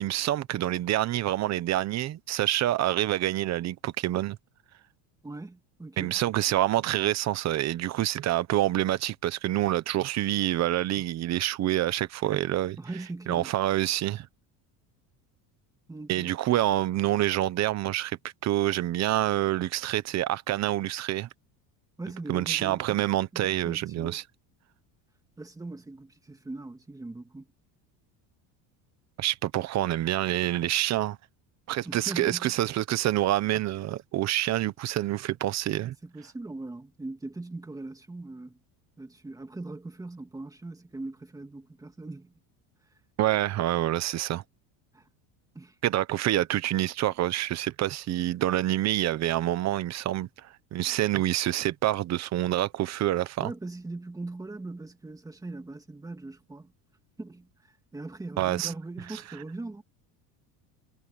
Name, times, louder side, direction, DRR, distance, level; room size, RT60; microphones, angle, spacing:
voice 1, 0.0-4.4 6.0-12.8 13.3-14.3 16.1-18.2 18.4-21.3 22.3-24.2 29.2-31.2 31.7-35.9 43.2-44.4 45.8-53.5 58.4-58.7 59.1-59.2, right 14 dB, 35° right, 1.0 m, -27 dB
voice 2, 5.2-6.2 12.8-13.5 15.9-16.3 22.0-23.0 23.3-24.2 25.4-27.5 31.8-32.5 36.0-38.6 39.0-42.3 44.9-45.1 45.5-45.8 53.4-56.7 57.2-59.8, right 2 dB, 10° right, 2.0 m, -40 dB
cardioid pair, 165°, 45 cm